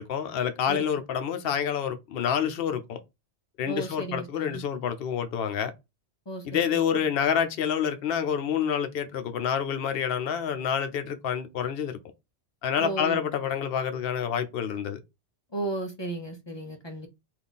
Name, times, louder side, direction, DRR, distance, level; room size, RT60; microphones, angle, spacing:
voice 1, 0.0-3.0 3.6-5.7 6.4-12.0 12.6-15.0, left 8 dB, 60° left, 0.8 m, -28 dB
voice 2, 3.7-4.6 6.3-6.8 12.8-13.2 15.5-17.1, right 2 dB, 30° left, 0.6 m, -34 dB
3.5 x 2.6 x 4.0 m
omnidirectional pair, 1.2 m